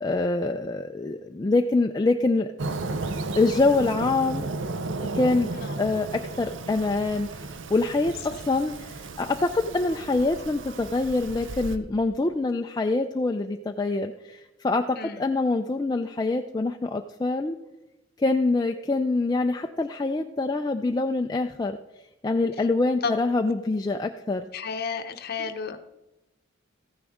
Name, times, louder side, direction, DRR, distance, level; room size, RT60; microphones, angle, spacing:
voice 1, 0.0-2.5 3.4-4.5 5.1-5.5 5.8-7.4 7.7-17.6 18.2-21.8 22.2-24.5, left 3 dB, 20° left, 4 dB, 0.3 m, -25 dB
Fireworks, 2.6-11.8, right 3 dB, 65° right, 0.6 m, -34 dB
voice 2, 24.5-25.8, left 5 dB, 50° left, 7 dB, 0.7 m, -32 dB
14.5 x 9.8 x 3.5 m, 1.0 s
head